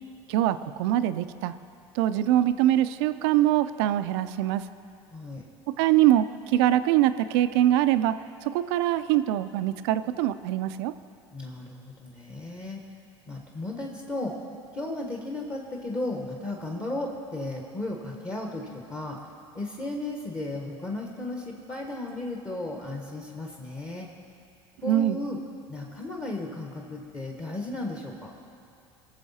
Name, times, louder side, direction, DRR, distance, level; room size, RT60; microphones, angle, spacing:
voice 1, 0.3-1.5 1.9-4.7 5.8-10.9 24.8-25.2, right 13 dB, 70° right, 12 dB, 0.5 m, -23 dB
voice 2, 5.1-5.4 11.3-12.8 13.3-14.3 14.7-19.2 19.5-24.1 24.8-25.4 25.7-28.3, left 2 dB, 25° left, 0 dB, 1.3 m, -35 dB
18.5 x 7.0 x 4.2 m, 2.6 s
hypercardioid pair, 80°, 14 cm